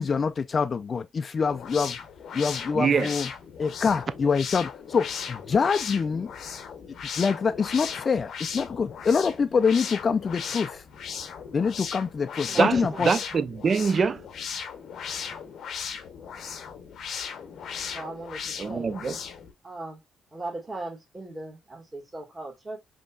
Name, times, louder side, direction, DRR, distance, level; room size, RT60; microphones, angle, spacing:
voice 1, 0.0-2.0 2.3-3.3 3.6-6.3 7.2-10.8 11.5-13.1, left 5 dB, 40° left, 0.4 m, -25 dB
sound 1, 1.5-19.5, left 7 dB, 65° left, 0.7 m, -37 dB
voice 2, 2.7-3.1 12.6-14.2 18.6-19.2, right 5 dB, 45° right, 0.5 m, -24 dB
voice 3, 12.5-13.1 17.9-19.0 19.6-20.0 20.3-22.8, right 2 dB, 20° right, 1.7 m, -38 dB
5.2 x 2.9 x 2.2 m
cardioid pair, 90°, 0 cm